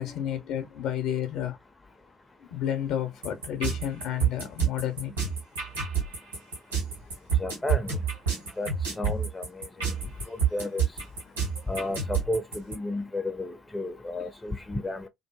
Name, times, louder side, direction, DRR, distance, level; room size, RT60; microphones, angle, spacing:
voice 1, 0.0-1.6 2.4-5.3 9.8-10.0 11.5-11.6, left 10 dB, 55° left, 0.6 m, -31 dB
sound 1, 3.2-12.7, right 7 dB, 80° right, 1.4 m, -28 dB
voice 2, 7.4-8.0 8.6-8.7 9.0-9.7 10.5-10.8 11.7-15.1, left 2 dB, 15° left, 0.4 m, -32 dB
2.6 x 2.5 x 2.2 m
figure-of-eight pair, 55°, 0 cm